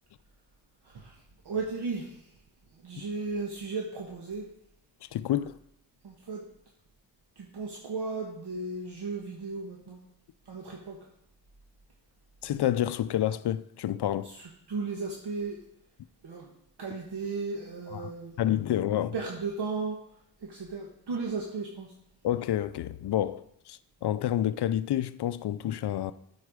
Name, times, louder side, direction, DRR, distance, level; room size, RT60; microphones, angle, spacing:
voice 1, 0.8-2.3 2.7-4.5 6.0-6.5 7.4-10.0 10.4-11.1 14.2-15.6 16.2-16.5 16.8-18.4 19.1-21.9, right 4 dB, 65° right, 1.3 m, -35 dB
voice 2, 5.1-5.6 12.4-14.3 17.9-18.1 18.4-19.1 22.2-26.1, left 12 dB, 65° left, 0.5 m, -29 dB
12.5 x 4.8 x 4.9 m
wide cardioid pair, 155°, 44 cm